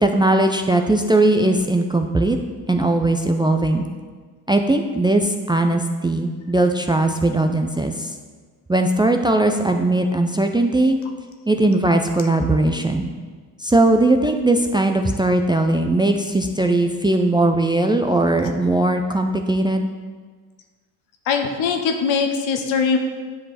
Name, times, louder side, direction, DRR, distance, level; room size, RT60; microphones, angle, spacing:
voice 1, 0.0-2.4 2.7-3.9 4.5-8.1 8.7-11.0 11.5-13.1 13.6-19.9, right 2 dB, 10° right, 5 dB, 0.5 m, -19 dB
voice 2, 21.3-23.0, left 5 dB, 70° left, 4 dB, 1.2 m, -21 dB
9.6 x 5.4 x 4.2 m, 1.5 s
hypercardioid pair, 70°, 49 cm